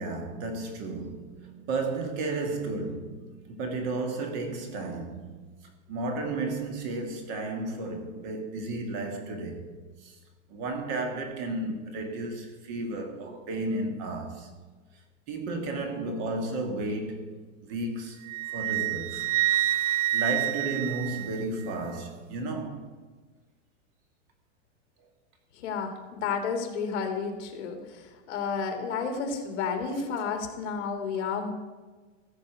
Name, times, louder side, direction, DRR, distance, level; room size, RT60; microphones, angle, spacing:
voice 1, 0.0-5.4 5.9-9.7 10.0-10.2 10.5-14.5 15.3-17.3 17.6-18.2 18.5-19.3 20.1-22.8, right 2 dB, 35° right, 1.7 m, -33 dB
Wind instrument woodwind instrument, 18.3-21.7, right 15 dB, 70° right, 0.5 m, -28 dB
voice 2, 25.5-31.5, left 5 dB, 60° left, 2.1 m, -31 dB
15.0 x 5.2 x 7.8 m
supercardioid pair, 175°, 39 cm